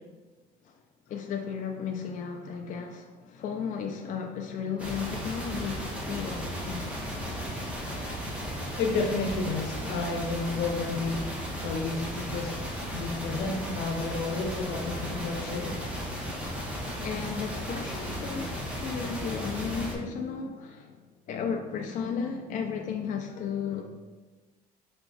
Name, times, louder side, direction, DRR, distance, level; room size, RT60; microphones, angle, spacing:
voice 1, 1.1-7.0 15.9-23.9, left 6 dB, 50° left, 3 dB, 0.4 m, -35 dB
sound 1, 4.8-19.9, equal, 5° right, 1.0 m, -35 dB
voice 2, 8.8-11.2 11.6-15.8, left 3 dB, 85° left, 1 dB, 0.9 m, -31 dB
5.6 x 2.3 x 3.9 m, 1.2 s
cardioid pair, 110°, 17 cm